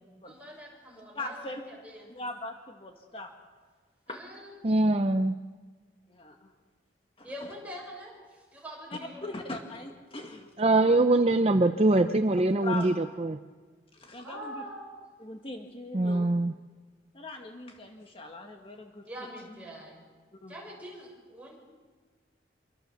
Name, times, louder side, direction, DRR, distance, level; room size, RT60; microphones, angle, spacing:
voice 1, 0.2-2.1 4.1-4.6 7.2-9.3 14.2-15.1 19.0-20.1 20.5-21.6, equal, 10° right, -2 dB, 6.7 m, -44 dB
voice 2, 1.2-1.6 2.1-3.3 4.1-4.2 6.1-6.5 7.2-7.3 8.9-10.5 12.6-13.0 13.9-14.6 15.2-16.3 17.1-19.0 20.4-20.5, left 2 dB, 30° left, 3 dB, 1.8 m, -40 dB
voice 3, 4.6-5.4 10.6-13.4 15.9-16.5, right 2 dB, 35° right, 8 dB, 0.7 m, -23 dB
26.5 x 24.0 x 7.0 m, 1.5 s
head